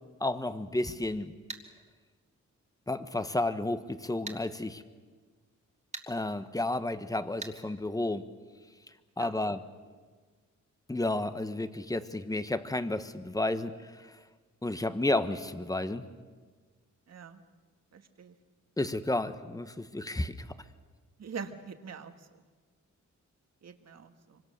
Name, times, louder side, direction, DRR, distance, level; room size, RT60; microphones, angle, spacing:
voice 1, 0.2-1.3 2.9-4.8 6.1-8.3 9.2-9.6 10.9-13.7 14.6-16.0 18.8-20.5, left 2 dB, 10° left, 11 dB, 1.3 m, -31 dB
sound 1, 1.5-1.7 4.3-4.4 5.9-6.1 7.4-7.6, right 2 dB, 25° right, 2.2 m, -40 dB
voice 2, 17.1-17.4 17.9-18.3 21.2-22.1 23.6-24.4, right 6 dB, 55° right, 7 dB, 1.9 m, -43 dB
25.0 x 25.0 x 6.8 m, 1.5 s
cardioid pair, 90°, 30 cm